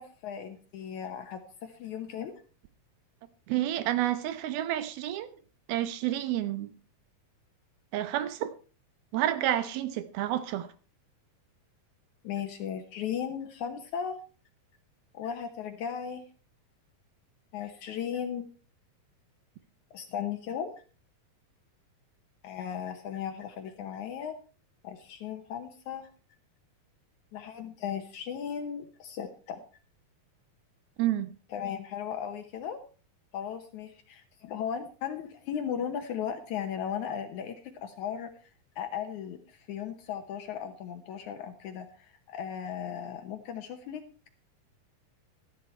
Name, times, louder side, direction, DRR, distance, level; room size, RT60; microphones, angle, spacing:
voice 1, 0.0-2.3 12.2-14.2 15.1-16.3 17.5-18.5 19.9-20.7 22.4-24.4 24.8-26.1 27.3-29.6 31.5-32.8 33.3-38.5 38.8-44.3, left 8 dB, 70° left, 2.0 m, -36 dB
voice 2, 3.5-5.3 5.7-6.7 7.9-8.5 9.1-10.7 31.0-31.3, right 13 dB, 85° right, 2.8 m, -29 dB
14.0 x 10.5 x 4.4 m
omnidirectional pair, 4.2 m